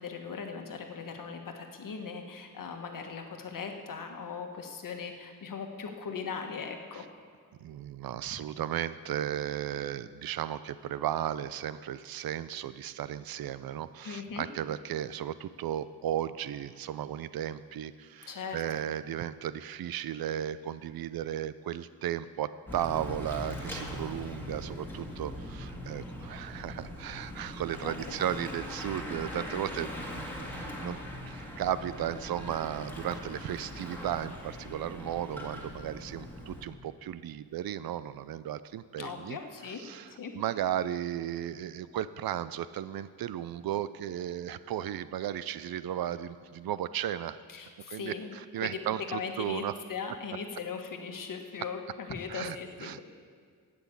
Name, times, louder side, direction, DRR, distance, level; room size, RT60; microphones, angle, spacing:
voice 1, 0.0-7.1 14.0-14.4 18.3-18.8 27.8-28.2 39.0-40.3 47.5-48.8 49.1-49.6 49.9-53.0, left 5 dB, 65° left, 4 dB, 1.4 m, -39 dB
voice 2, 7.6-31.0 31.3-39.4 39.8-47.4 47.9-49.7 52.3-53.0, right 11 dB, 90° right, 15 dB, 0.5 m, -35 dB
Bicycle / Mechanisms, 22.7-36.7, left 1 dB, 5° left, 1.9 m, -41 dB
15.0 x 6.1 x 8.5 m, 2.1 s
wide cardioid pair, 150°, 35 cm